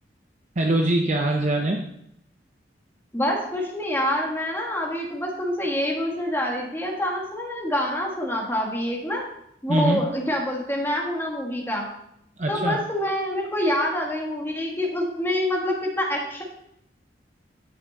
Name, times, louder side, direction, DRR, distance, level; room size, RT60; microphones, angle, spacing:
voice 1, 0.6-1.9 9.7-10.0 12.4-12.8, right 1 dB, 40° right, 2 dB, 0.7 m, -23 dB
voice 2, 3.1-9.2 9.6-11.9 12.5-16.4, left 1 dB, 15° left, -1 dB, 1.7 m, -26 dB
11.5 x 5.9 x 4.1 m, 0.76 s
head